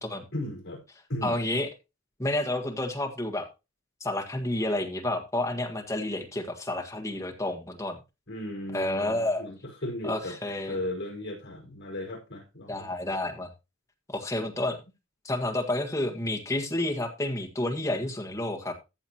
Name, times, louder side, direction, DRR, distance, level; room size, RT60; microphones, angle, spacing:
voice 1, 0.3-0.8 1.1-1.4 8.3-9.6 9.8-10.4 10.7-12.9, left 1 dB, 55° left, 5.1 m, -35 dB
voice 2, 1.2-1.7 2.2-3.5 4.0-8.0 8.7-9.4 10.0-10.8 12.7-13.5 14.1-14.8 15.2-18.7, left 1 dB, 15° left, 1.6 m, -30 dB
14.5 x 7.1 x 2.9 m
head